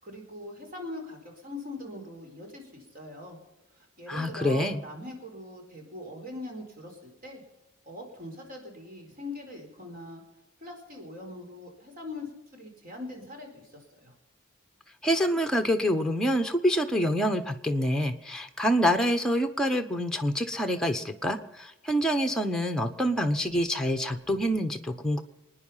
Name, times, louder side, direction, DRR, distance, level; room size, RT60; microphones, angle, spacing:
voice 1, 0.0-3.4 3.8-7.4 7.8-10.2 10.6-14.1, left 2 dB, 45° right, 2 dB, 4.4 m, -42 dB
voice 2, 4.1-4.8 15.0-25.2, equal, 5° left, 6 dB, 1.1 m, -26 dB
25.5 x 9.9 x 5.7 m, 0.96 s
head